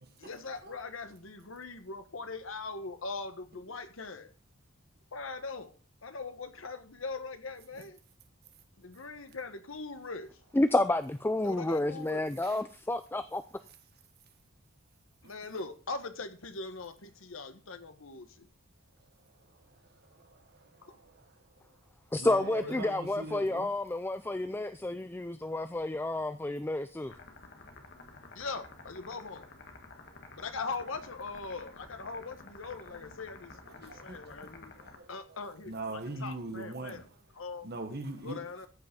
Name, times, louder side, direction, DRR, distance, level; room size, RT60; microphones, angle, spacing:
voice 1, 0.2-4.3 5.1-5.7 6.0-8.0 8.8-10.4 11.4-12.2 15.2-18.5 20.8-21.0 22.3-22.8 28.3-29.5 30.4-34.7 35.1-37.1 37.4-37.7 38.2-38.7, left 4 dB, 75° left, 1.3 m, -41 dB
voice 2, 10.5-13.4 22.1-27.1, left 2 dB, 10° left, 0.4 m, -30 dB
voice 3, 19.5-21.8 22.2-23.7 33.8-34.2 34.8-37.0 37.6-38.4, right 2 dB, 50° right, 1.6 m, -42 dB
sound 1, 27.1-35.0, left 3 dB, 55° left, 1.7 m, -51 dB
14.0 x 5.7 x 5.3 m
head